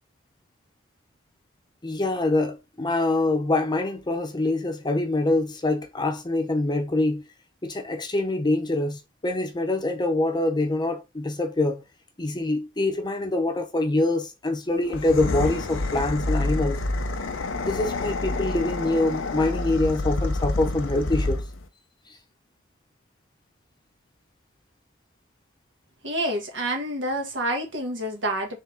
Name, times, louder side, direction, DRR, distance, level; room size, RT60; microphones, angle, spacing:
voice 1, 1.8-7.2 7.6-11.8 12.2-16.8 17.6-21.4, left 2 dB, 20° left, 0.8 m, -25 dB
sound 1, 14.8-21.6, left 2 dB, 90° left, 0.7 m, -28 dB
voice 2, 26.0-28.6, right 1 dB, 70° right, 1.5 m, -28 dB
4.2 x 3.4 x 3.6 m
head